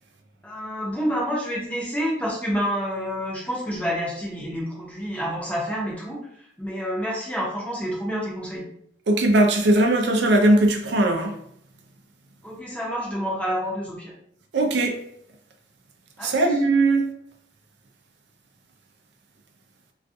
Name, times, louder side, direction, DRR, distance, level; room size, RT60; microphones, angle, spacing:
voice 1, 0.4-6.3 6.6-8.6 12.4-14.1 16.2-16.5, equal, 10° left, -5 dB, 0.7 m, -28 dB
voice 2, 9.1-11.3 14.5-15.0 16.2-17.1, right 2 dB, 80° right, 3 dB, 0.4 m, -19 dB
2.3 x 2.3 x 2.6 m, 0.69 s
head